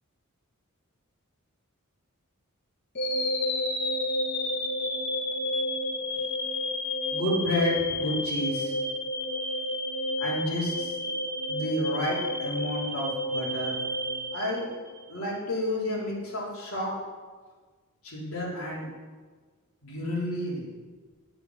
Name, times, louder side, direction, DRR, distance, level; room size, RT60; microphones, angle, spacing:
sound 1, 2.9-15.1, left 1 dB, 50° left, 2.2 m, -30 dB
voice 1, 7.1-8.7 10.2-10.9 11.5-13.8 14.3-14.7 15.1-17.0 18.0-18.9 19.8-20.7, left 1 dB, 80° left, -5 dB, 3.7 m, -30 dB
11.0 x 6.9 x 6.5 m, 1.4 s
head